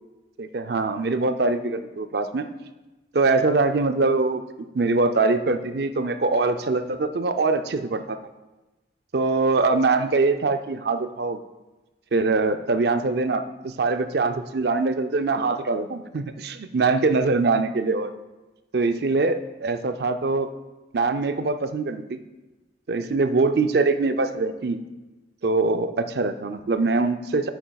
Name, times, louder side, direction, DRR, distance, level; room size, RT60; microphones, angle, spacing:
voice 1, 0.4-2.5 3.1-4.4 4.7-8.2 9.1-11.4 12.1-18.1 18.7-20.5 20.9-22.2 22.9-24.8 25.4-27.5, right 3 dB, 55° right, 9 dB, 0.5 m, -23 dB
9.1 x 8.9 x 2.3 m, 1.1 s
head